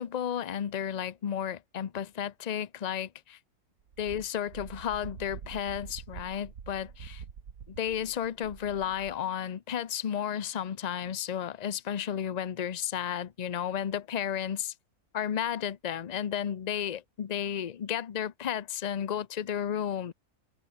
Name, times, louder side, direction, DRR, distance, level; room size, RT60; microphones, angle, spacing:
voice 1, 0.0-3.4 4.0-7.2 7.7-14.7 15.1-20.1, left 9 dB, 50° left, 0.5 m, -33 dB
Wind, 3.9-9.2, right 7 dB, 65° right, 1.9 m, -46 dB
omnidirectional pair, 1.6 m